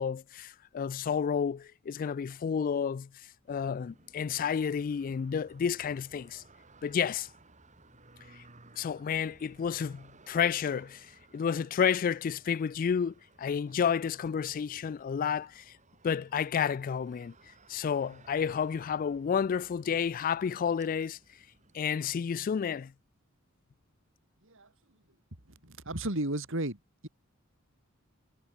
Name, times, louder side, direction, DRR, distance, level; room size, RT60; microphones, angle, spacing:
voice 1, 0.0-3.1 3.5-6.4 6.8-7.3 8.4-8.5 8.8-15.7 16.0-17.3 17.7-21.2 21.7-22.9, left 7 dB, 40° left, 0.3 m, -31 dB
sound 1, 3.5-21.9, right 2 dB, 35° right, 6.3 m, -59 dB
voice 2, 25.5-27.1, right 1 dB, 65° right, 4.7 m, -34 dB
head